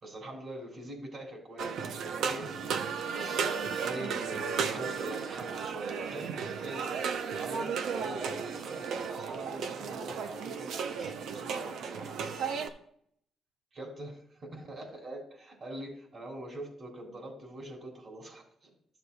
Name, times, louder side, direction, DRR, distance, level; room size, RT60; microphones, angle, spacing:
voice 1, 0.0-2.5 3.1-7.7 8.0-12.3 13.7-18.4, right 1 dB, 50° right, 0 dB, 3.1 m, -43 dB
sound 1, 1.6-12.7, right 6 dB, 75° right, 0.7 m, -34 dB
13.0 x 6.8 x 2.3 m, 0.67 s
cardioid pair, 90°, 0 cm